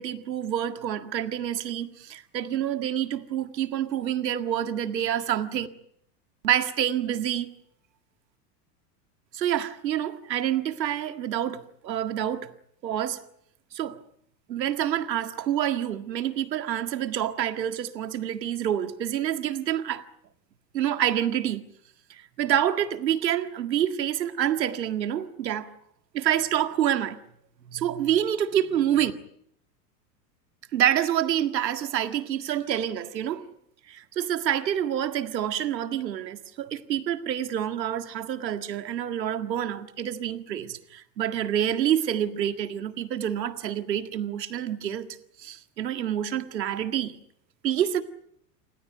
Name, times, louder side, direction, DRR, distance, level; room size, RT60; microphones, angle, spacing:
voice 1, 0.0-5.7 6.4-7.5 9.3-12.5 12.8-13.2 13.7-14.0 14.5-20.0 20.7-21.6 22.4-25.7 26.1-27.2 27.7-29.1 30.7-33.4 33.9-47.2 47.6-48.0, right 10 dB, 90° right, 1.9 m, -27 dB
28.5 x 16.0 x 9.2 m
hypercardioid pair, 100°, 49 cm